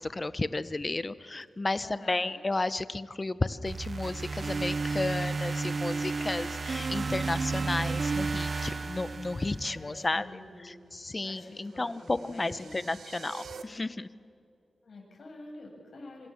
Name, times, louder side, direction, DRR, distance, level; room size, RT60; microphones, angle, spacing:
voice 1, 0.0-10.3 10.6-14.1, left 2 dB, 25° left, 15 dB, 0.8 m, -33 dB
voice 2, 1.7-2.4 9.6-10.7 11.2-12.7 14.8-16.3, left 2 dB, 60° left, 0 dB, 7.4 m, -48 dB
sound 1, 3.7-9.8, right 4 dB, 45° right, 0.6 m, -32 dB
sound 2, 11.1-13.6, right 6 dB, 85° right, 1.5 m, -48 dB
26.5 x 25.5 x 7.2 m, 2.3 s
wide cardioid pair, 100°, 0 cm